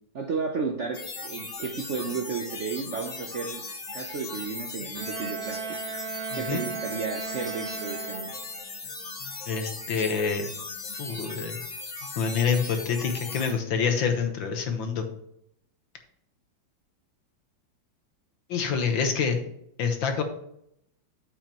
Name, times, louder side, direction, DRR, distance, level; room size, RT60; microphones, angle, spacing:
voice 1, 0.1-3.6 3.9-5.6 6.3-8.3, right 5 dB, 55° right, 2 dB, 0.8 m, -33 dB
sound 1, 0.9-13.5, left 3 dB, 40° left, 1.6 m, -38 dB
Bowed string instrument, 5.0-8.7, right 8 dB, 75° right, 1.4 m, -36 dB
voice 2, 6.3-6.6 9.5-10.5 11.0-11.6 12.2-15.0 18.5-19.4 19.8-20.2, left 6 dB, 75° left, 5 dB, 1.9 m, -27 dB
8.9 x 7.6 x 3.0 m, 0.74 s
omnidirectional pair, 2.2 m